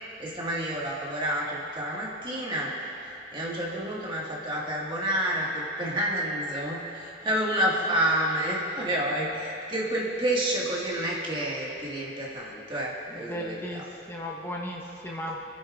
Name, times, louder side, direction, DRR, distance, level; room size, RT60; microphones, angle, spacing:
voice 1, 0.2-13.9, right 1 dB, 30° right, -4 dB, 1.8 m, -29 dB
voice 2, 13.3-15.5, equal, 15° left, -2 dB, 1.2 m, -36 dB
27.0 x 9.8 x 2.5 m, 2.8 s
head